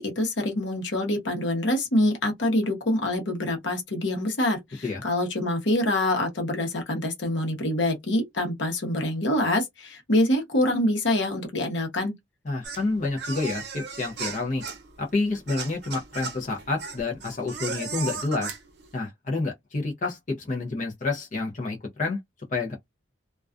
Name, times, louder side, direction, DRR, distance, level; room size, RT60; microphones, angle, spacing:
voice 1, 0.0-12.1, left 1 dB, 70° left, 0.9 m, -25 dB
voice 2, 12.5-14.6 15.0-18.6 18.9-22.2 22.5-22.7, left 3 dB, 40° left, 0.5 m, -29 dB
sound 1, 12.6-18.9, right 5 dB, 60° right, 0.6 m, -36 dB
2.3 x 2.2 x 2.4 m
head